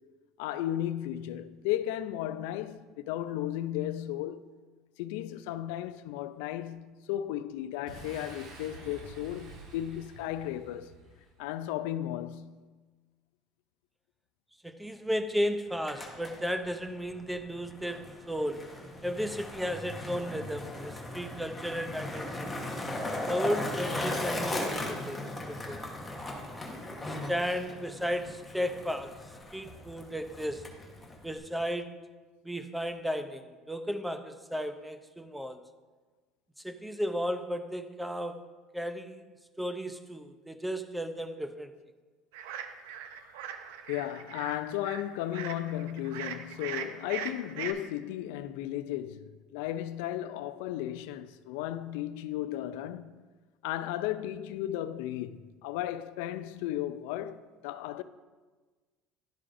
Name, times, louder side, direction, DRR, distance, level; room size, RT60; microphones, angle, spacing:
voice 1, 0.4-4.4 5.0-10.9 11.4-12.6 43.9-53.1 53.6-58.0, left 12 dB, 85° left, 0.3 m, -35 dB
Boom, 7.9-11.5, right 2 dB, 65° right, 1.5 m, -49 dB
voice 2, 14.6-18.7 19.0-22.7 23.3-25.8 26.8-30.7 31.2-32.1 32.4-35.6 36.6-38.5 38.7-39.2 39.6-41.7, equal, 5° right, 0.5 m, -34 dB
Skateboard, 15.7-31.4, left 1 dB, 10° left, 1.1 m, -38 dB
sound 1, 42.3-47.7, right 9 dB, 90° right, 0.5 m, -40 dB
11.5 x 4.8 x 2.5 m
cardioid pair, 125°, 0 cm